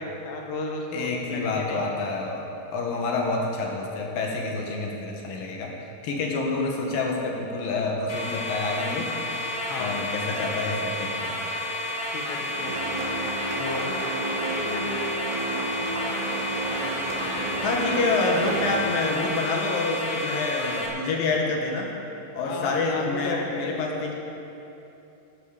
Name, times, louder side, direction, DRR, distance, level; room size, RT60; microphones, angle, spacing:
voice 1, 0.0-1.8 9.7-10.0 12.1-12.8 13.6-13.9 14.5-14.8 22.4-24.0, left 3 dB, 85° left, 1 dB, 3.5 m, -34 dB
voice 2, 0.9-5.7 6.0-11.3 17.6-21.9 22.3-24.1, left 3 dB, 65° left, 0 dB, 2.6 m, -28 dB
sound 1, 8.1-20.9, left 1 dB, 45° left, 1.2 m, -31 dB
sound 2, 12.5-19.3, right 2 dB, 90° right, 4.1 m, -31 dB
13.0 x 12.5 x 4.9 m, 2.9 s
omnidirectional pair, 5.0 m